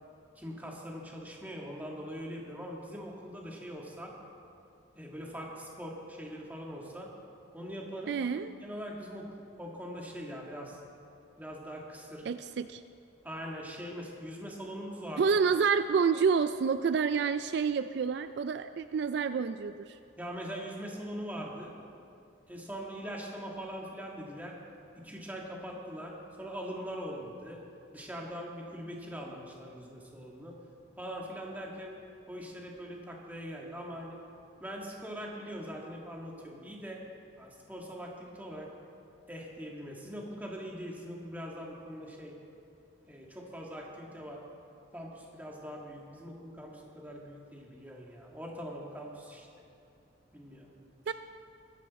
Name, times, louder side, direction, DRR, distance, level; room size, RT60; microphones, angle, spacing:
voice 1, 0.4-4.1 5.0-7.1 7.5-8.1 8.6-10.8 11.4-12.2 13.2-15.3 20.2-21.7 22.5-24.6 25.0-27.6 27.9-30.6 31.0-32.0 32.3-34.2 34.6-37.0 37.4-38.7 39.3-42.3 43.1-44.5 44.9-49.5 50.3-50.7 51.1-51.2, equal, 10° right, -2 dB, 1.8 m, -42 dB
voice 2, 8.1-8.5 12.3-12.8 15.2-20.0 51.1-51.2, right 6 dB, 60° right, 11 dB, 0.3 m, -28 dB
22.0 x 10.5 x 4.2 m, 2.6 s
head